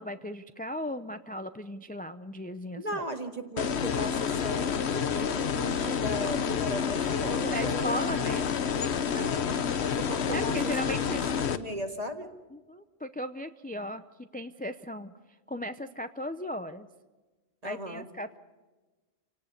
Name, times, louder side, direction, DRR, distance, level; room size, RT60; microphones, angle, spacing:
voice 1, 0.0-3.0 7.5-8.5 10.3-11.3 12.5-15.1 15.5-16.9 17.6-18.4, equal, 10° left, 9 dB, 0.5 m, -36 dB
voice 2, 2.8-8.0 9.1-9.5 9.9-10.7 11.1-11.2 11.5-12.3 17.6-18.0, equal, 35° right, 6 dB, 2.0 m, -37 dB
sound 1, 3.6-11.6, left 7 dB, 80° left, 1.3 m, -29 dB
28.0 x 18.0 x 6.7 m, 1.2 s
omnidirectional pair, 1.1 m